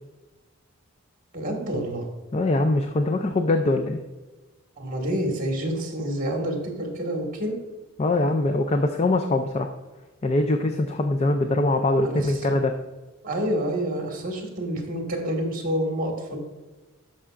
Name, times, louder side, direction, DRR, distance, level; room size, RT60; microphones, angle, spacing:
voice 1, 1.3-2.1 4.8-7.6 12.0-12.5 13.2-16.4, equal, 35° right, 1 dB, 1.7 m, -28 dB
voice 2, 2.3-4.0 8.0-9.7 10.2-12.7, left 2 dB, 30° left, 6 dB, 0.4 m, -22 dB
12.5 x 5.5 x 2.5 m, 1.2 s
head